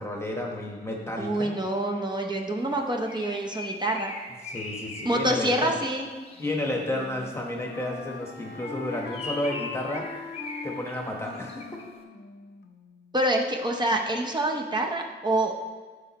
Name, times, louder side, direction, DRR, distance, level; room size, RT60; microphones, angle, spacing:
voice 1, 0.0-1.5 4.4-5.8 6.4-10.0 10.6-11.6, left 1 dB, 15° left, -1 dB, 1.2 m, -31 dB
voice 2, 1.2-4.1 5.0-6.1 13.1-15.5, right 1 dB, 25° right, 1 dB, 0.7 m, -26 dB
Bird, 2.7-6.8 8.4-11.9, left 3 dB, 30° left, 0.9 m, -41 dB
Wind instrument woodwind instrument, 6.4-13.2, left 4 dB, 80° left, 0.6 m, -42 dB
12.0 x 5.1 x 3.0 m, 1.5 s
wide cardioid pair, 120°, 18 cm